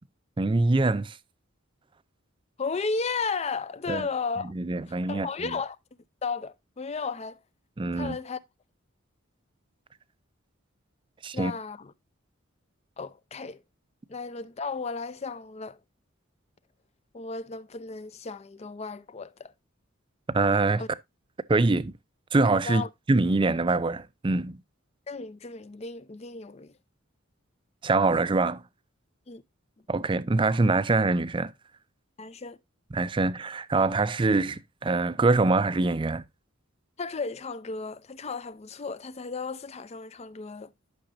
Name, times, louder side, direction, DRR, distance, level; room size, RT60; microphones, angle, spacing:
voice 1, 0.4-1.2 3.9-4.1 4.5-5.5 7.8-8.2 11.2-11.5 20.3-20.8 21.5-21.9 22.3-24.6 27.8-28.6 29.9-31.5 32.9-36.2, right 3 dB, 25° right, 0.4 m, -24 dB
voice 2, 2.6-4.5 5.1-5.8 6.2-7.4 7.9-8.4 11.3-11.9 13.0-13.6 14.1-15.8 17.1-19.5 20.8-20.9 22.6-22.9 25.1-26.7 29.3-29.4 32.2-32.6 37.0-40.7, left 4 dB, 30° left, 0.5 m, -34 dB
12.0 x 6.1 x 2.6 m
head